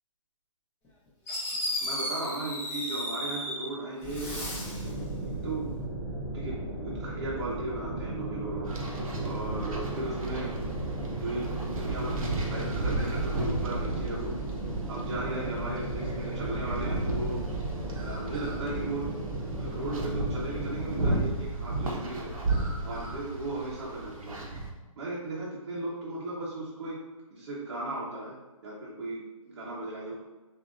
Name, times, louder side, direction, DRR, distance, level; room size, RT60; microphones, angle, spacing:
Fireworks, 0.8-0.9 1.3-3.7 4.0-4.9, left 1 dB, 15° left, 1.0 m, -34 dB
voice 1, 1.8-4.5 5.4-5.8 6.3-8.7 9.2-10.6 11.1-14.4 14.9-17.4 18.0-19.1 19.6-22.4 22.8-24.4 25.0-27.0 27.3-30.1, right 2 dB, 45° right, -7 dB, 1.0 m, -36 dB
sound 1, 4.0-21.0, right 2 dB, 10° right, 0.7 m, -35 dB
sound 2, 8.6-24.7, right 2 dB, 85° right, 1.1 m, -34 dB
6.3 x 2.7 x 2.5 m, 1.2 s
hypercardioid pair, 170°, 18 cm